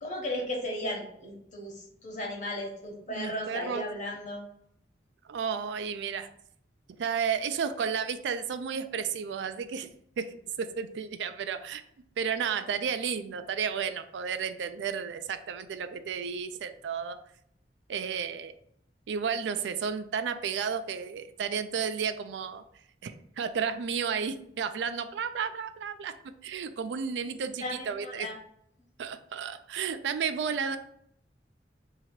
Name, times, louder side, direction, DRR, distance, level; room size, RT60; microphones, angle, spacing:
voice 1, 0.0-4.4 27.4-28.3 30.5-30.8, left 1 dB, 45° left, -1 dB, 1.1 m, -36 dB
voice 2, 3.1-3.9 5.3-6.3 7.0-9.9 10.2-11.8 12.2-17.2 17.9-18.5 19.1-22.6 23.0-26.1 26.4-28.3 29.0-30.8, right 6 dB, 85° right, 10 dB, 0.3 m, -32 dB
2.9 x 2.8 x 4.4 m, 0.69 s
head